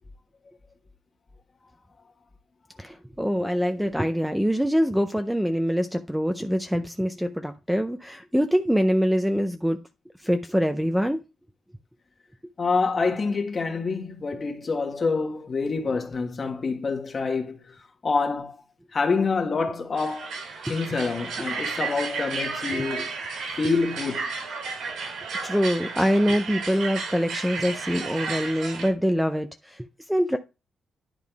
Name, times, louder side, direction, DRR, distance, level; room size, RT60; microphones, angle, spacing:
voice 1, 2.8-9.8 10.2-11.2 22.7-22.8 25.4-30.4, equal, 5° right, 0.5 m, -24 dB
voice 2, 12.6-17.8 18.0-18.5 18.9-20.3 20.7-23.1 23.6-24.3, left 4 dB, 30° left, 1.4 m, -26 dB
sound 1, 20.0-28.9, right 4 dB, 80° right, 2.8 m, -33 dB
10.5 x 3.7 x 4.6 m
cardioid pair, 150°, 0 cm